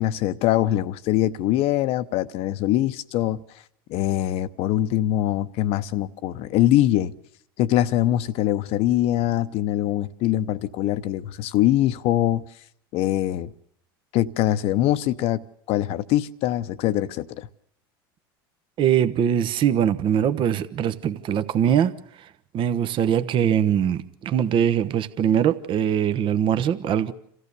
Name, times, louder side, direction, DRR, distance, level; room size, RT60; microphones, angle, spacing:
voice 1, 0.0-3.4 3.9-7.1 7.6-12.4 12.9-13.5 14.1-17.5, left 13 dB, 55° left, 0.8 m, -23 dB
voice 2, 18.8-22.3 22.5-27.1, right 9 dB, 45° right, 1.0 m, -22 dB
27.0 x 15.0 x 6.9 m
hypercardioid pair, 90°, 12 cm